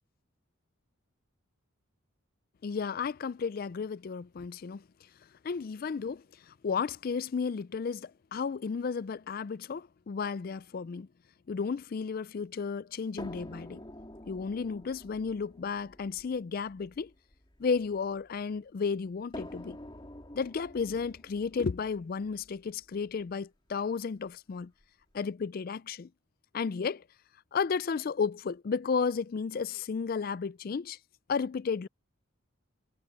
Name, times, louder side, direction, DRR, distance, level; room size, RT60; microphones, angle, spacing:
voice 1, 2.6-4.8 5.4-11.1 11.5-13.8 14.3-17.1 17.6-19.8 20.3-24.7 25.1-26.1 26.5-27.0 27.5-31.0 31.3-31.9, left 5 dB, 45° left, 0.3 m, -33 dB
sound 1, 13.2-18.4 19.3-23.3 24.3-24.4 24.8-24.9, left 1 dB, 20° left, 3.1 m, -48 dB
head